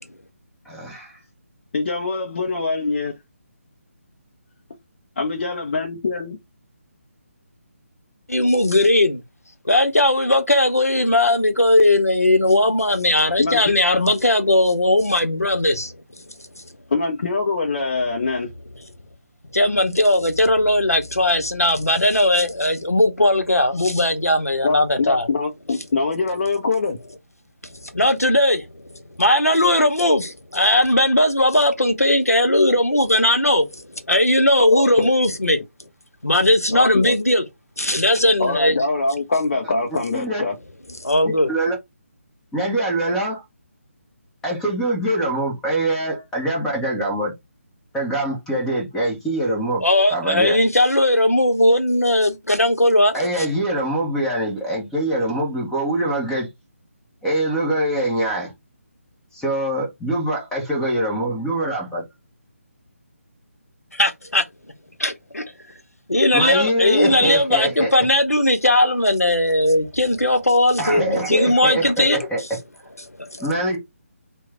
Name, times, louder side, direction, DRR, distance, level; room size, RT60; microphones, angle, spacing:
voice 1, 0.6-1.2 40.1-40.4 41.5-41.7 42.5-43.4 44.4-47.3 47.9-49.8 50.1-50.6 53.1-56.5 57.2-58.5 59.3-62.0 66.3-67.9 70.8-72.4 73.4-73.8, right 1 dB, 5° left, 1.0 m, -23 dB
voice 2, 1.7-3.2 5.2-6.4 13.4-13.6 16.9-18.5 24.6-27.0 34.6-35.1 36.7-37.1 38.4-40.6, left 3 dB, 45° left, 0.6 m, -23 dB
voice 3, 8.3-9.2 9.6-15.9 19.5-25.3 27.8-28.6 29.2-35.6 36.2-37.4 37.8-38.8 41.0-41.5 49.8-53.5 63.9-64.4 65.0-65.4 66.1-72.3 73.2-73.5, left 1 dB, 90° left, 0.8 m, -18 dB
3.0 x 2.3 x 3.5 m
figure-of-eight pair, 150°, 8 cm